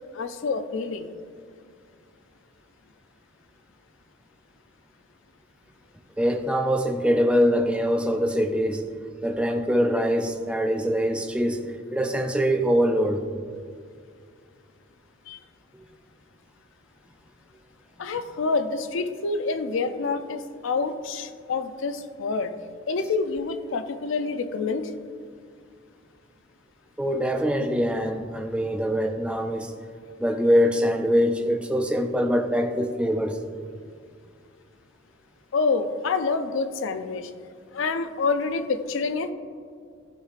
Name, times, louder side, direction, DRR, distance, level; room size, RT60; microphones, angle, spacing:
voice 1, 0.1-1.1 15.3-15.4 18.0-22.5 22.9-24.9 35.5-37.3 37.7-39.3, left 4 dB, 75° left, 10 dB, 0.4 m, -27 dB
voice 2, 6.2-8.8 9.2-13.3 27.0-29.7 30.2-33.4, equal, 5° right, 5 dB, 0.3 m, -23 dB
11.5 x 4.8 x 2.4 m, 2.2 s
head